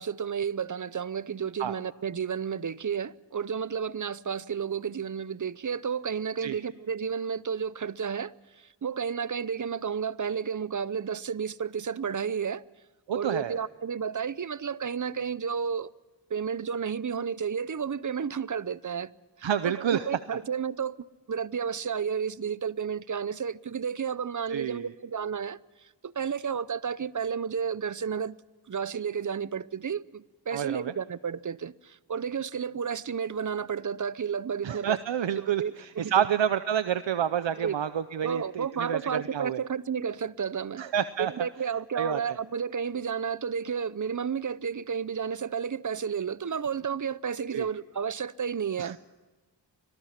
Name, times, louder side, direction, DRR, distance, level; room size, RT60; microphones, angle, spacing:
voice 1, 0.0-12.6 13.1-15.9 16.3-19.1 19.4-21.0 21.3-25.6 26.0-28.4 28.7-35.0 35.4-36.3 37.6-37.8 38.2-40.9 41.2-49.0, right 7 dB, 45° right, 0.6 m, -32 dB
voice 2, 13.1-13.6 19.4-20.1 24.5-24.9 30.5-30.9 34.6-39.6 40.8-41.3 41.9-42.4 47.5-47.7 48.8-49.0, right 9 dB, 85° right, 0.8 m, -29 dB
25.0 x 18.5 x 5.8 m
wide cardioid pair, 70°, 44 cm